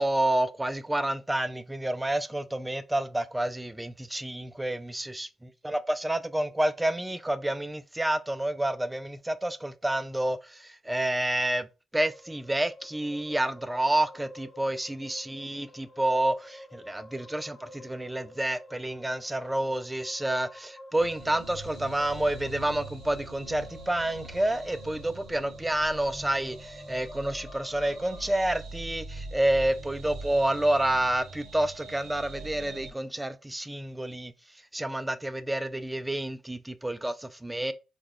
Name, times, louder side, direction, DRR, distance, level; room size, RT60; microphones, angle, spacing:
voice 1, 0.0-11.7 11.9-34.3 34.7-37.7, right 1 dB, 15° right, 0.3 m, -29 dB
sound 1, 12.0-28.3, left 1 dB, 45° left, 0.7 m, -49 dB
sound 2, 21.0-32.9, right 2 dB, 80° right, 0.6 m, -43 dB
2.2 x 2.2 x 3.3 m
supercardioid pair, 50°, 0 cm